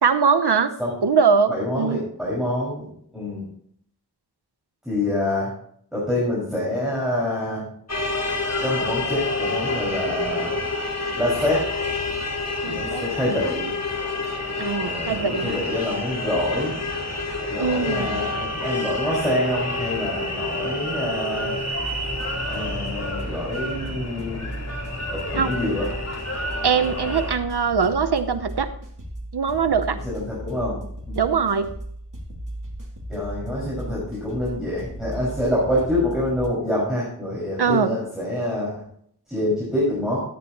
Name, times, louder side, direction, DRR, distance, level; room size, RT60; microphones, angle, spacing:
voice 1, 0.0-0.7 1.0-2.0 12.6-13.0 14.6-15.6 17.6-18.2 25.4-25.5 26.6-28.7 29.3-30.0 31.2-31.7 37.6-38.0, right 6 dB, 75° right, 11 dB, 1.0 m, -22 dB
voice 2, 1.5-3.5 4.8-5.5 5.9-7.7 8.6-10.6 11.1-11.7 12.6-13.7 14.8-16.7 17.5-21.6 22.5-24.5 25.1-25.9 30.0-31.2 33.1-38.8 39.3-40.2, left 1 dB, ahead, -8 dB, 5.7 m, -26 dB
sound 1, 7.9-27.4, left 2 dB, 40° left, 2.5 m, -28 dB
sound 2, 21.7-36.5, right 1 dB, 50° right, 3.1 m, -36 dB
14.0 x 9.5 x 3.0 m, 0.64 s
wide cardioid pair, 55°, 40 cm